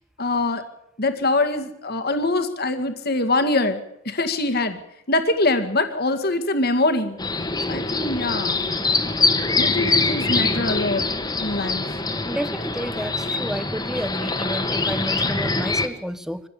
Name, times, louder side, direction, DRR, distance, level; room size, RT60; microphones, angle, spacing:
voice 1, 0.2-0.6 1.0-3.8 4.1-4.8 5.1-7.2 7.7-8.6 9.1-9.2 9.6-11.1 11.4-11.8, left 2 dB, 50° left, 8 dB, 2.1 m, -23 dB
sound 1, 7.2-15.9, left 3 dB, 20° left, 1.7 m, -24 dB
voice 2, 12.2-16.4, equal, ahead, 12 dB, 1.0 m, -31 dB
23.5 x 16.0 x 8.5 m, 0.81 s
head